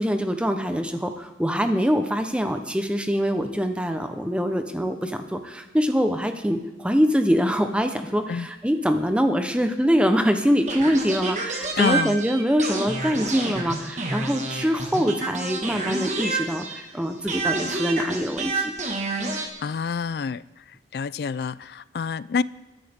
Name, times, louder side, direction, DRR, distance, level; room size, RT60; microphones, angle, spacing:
voice 1, 0.0-18.7, equal, 5° right, 0.8 m, -24 dB
sound 1, 10.7-16.9 17.3-19.5, right 3 dB, 40° right, 1.6 m, -29 dB
voice 2, 11.8-12.2 19.3-20.4 20.9-22.4, left 5 dB, 60° left, 0.3 m, -27 dB
21.5 x 11.0 x 3.6 m
head